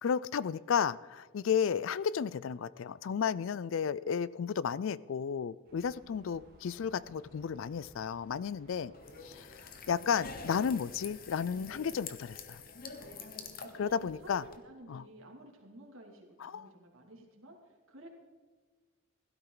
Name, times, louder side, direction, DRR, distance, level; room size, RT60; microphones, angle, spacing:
voice 1, 0.0-8.9 9.2-12.6 13.8-14.4 14.9-15.0 16.4-16.7, left 7 dB, 65° left, 19 dB, 0.4 m, -33 dB
sound 1, 5.6-11.8, right 1 dB, 45° right, 2.4 m, -60 dB
sound 2, 8.9-14.6, left 5 dB, 40° left, 1.0 m, -47 dB
voice 2, 9.0-9.5 13.0-18.1, right 1 dB, 70° right, 1 dB, 2.7 m, -54 dB
16.0 x 12.5 x 3.9 m, 1.4 s
head